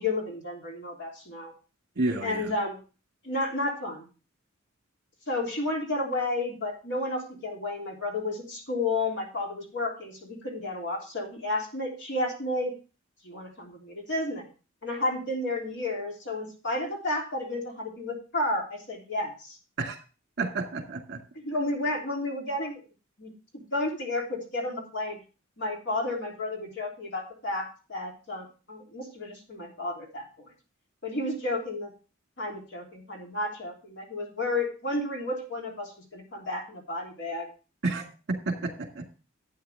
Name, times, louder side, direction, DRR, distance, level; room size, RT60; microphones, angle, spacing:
voice 1, 0.0-1.5 2.2-2.8 3.2-4.1 5.3-12.7 13.2-14.5 14.8-19.6 21.3-22.8 23.2-25.2 25.6-30.5 31.0-31.9 32.4-37.5, left 2 dB, 60° left, 0 dB, 3.4 m, -32 dB
voice 2, 2.0-2.5 19.8-20.0 20.4-21.2 37.8-39.1, right 3 dB, 55° right, 4 dB, 1.9 m, -31 dB
12.0 x 8.6 x 3.5 m, 0.34 s
head